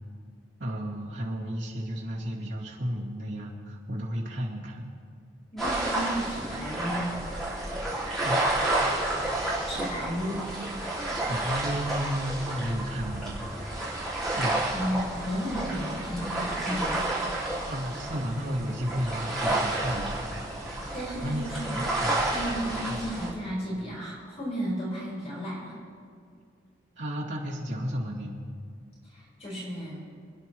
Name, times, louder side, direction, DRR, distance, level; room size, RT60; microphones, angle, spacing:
voice 1, 0.6-4.9 8.2-8.4 11.2-13.9 14.4-14.6 17.7-20.8 21.2-22.2 22.9-23.0 27.0-28.4, equal, 65° right, -5 dB, 2.2 m, -33 dB
voice 2, 5.5-7.2 9.7-10.5 14.7-17.0 20.9-21.8 22.3-25.8 29.0-30.0, equal, 35° left, -7 dB, 4.3 m, -33 dB
sound 1, 5.6-23.3, right 2 dB, ahead, 3.9 m, -30 dB
27.0 x 10.5 x 3.0 m, 2.2 s
head